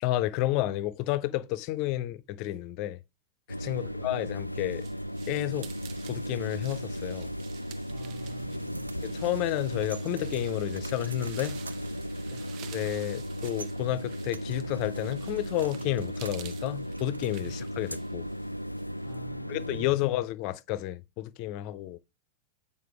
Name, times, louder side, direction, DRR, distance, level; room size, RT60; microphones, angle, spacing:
voice 1, 0.0-3.0 3.6-4.9 5.3-5.7 6.1-7.3 9.0-11.6 12.7-18.3 19.5-22.0, left 15 dB, 45° left, 0.6 m, -31 dB
sound 1, 3.5-19.9, equal, 90° left, 0.3 m, -36 dB
sound 2, 4.0-19.1, right 11 dB, 40° right, 0.9 m, -51 dB
voice 2, 7.9-9.0 12.3-12.4 17.4-17.5 19.0-20.0, right 4 dB, 10° right, 0.9 m, -49 dB
sound 3, 8.7-17.9, right 4 dB, 75° right, 0.7 m, -50 dB
9.2 x 5.4 x 3.3 m
figure-of-eight pair, 90°, 0 cm